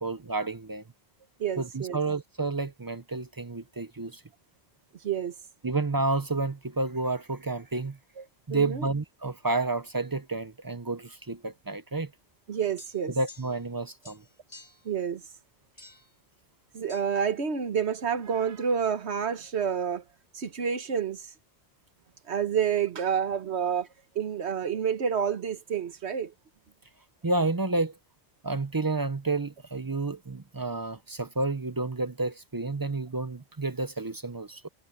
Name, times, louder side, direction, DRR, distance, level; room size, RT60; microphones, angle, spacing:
voice 1, 0.0-0.8 1.6-4.2 5.6-8.0 8.5-12.1 13.1-14.2 27.2-28.0 28.4-34.7, right 3 dB, 25° right, 0.5 m, -30 dB
voice 2, 1.4-2.0 5.0-5.3 8.5-8.8 12.5-13.1 14.8-15.2 16.7-20.0 20.3-21.3 22.3-23.9 24.1-26.3, right 7 dB, 85° right, 1.4 m, -29 dB
sound 1, 12.8-13.7 14.0-14.9 15.8-16.2 16.9-17.1, left 3 dB, 45° left, 3.5 m, -51 dB
omnidirectional pair, 1.1 m